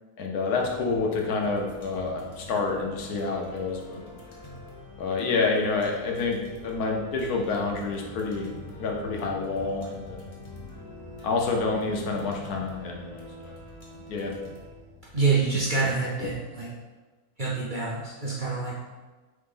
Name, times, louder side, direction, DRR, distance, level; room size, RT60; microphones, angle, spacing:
voice 1, 0.2-4.1 5.0-8.5 8.8-10.2 11.2-13.3 14.1-14.3, left 4 dB, 85° left, 0 dB, 1.3 m, -28 dB
sound 1, 0.5-15.8, left 1 dB, 30° left, 0.7 m, -44 dB
voice 2, 15.1-16.7 17.4-18.7, right 4 dB, 50° right, -5 dB, 0.6 m, -26 dB
3.8 x 3.5 x 3.8 m, 1.3 s
omnidirectional pair, 1.5 m